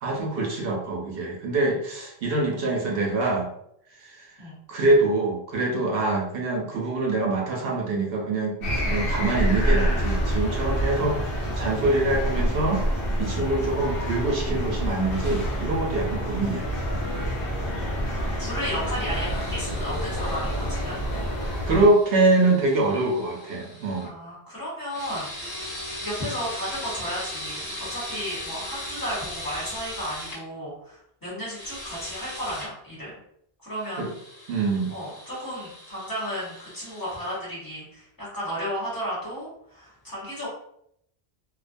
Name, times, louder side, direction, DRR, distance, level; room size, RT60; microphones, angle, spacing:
voice 1, 0.0-3.5 4.0-4.3 4.7-12.8 13.2-16.7 21.7-24.1 34.0-34.1 34.5-34.9, right 2 dB, 70° right, -1 dB, 0.8 m, -24 dB
sound 1, 8.6-21.9, equal, 65° left, 0.9 m, -27 dB
voice 2, 17.5-21.0 24.0-25.7 26.0-33.1 33.6-34.1 34.9-40.5, equal, 20° left, -8 dB, 1.0 m, -34 dB
sound 2, 18.8-24.1 24.9-30.4 31.5-32.7 33.7-37.4, left 1 dB, 40° left, 0.9 m, -39 dB
2.5 x 2.1 x 2.5 m, 0.72 s
omnidirectional pair, 1.0 m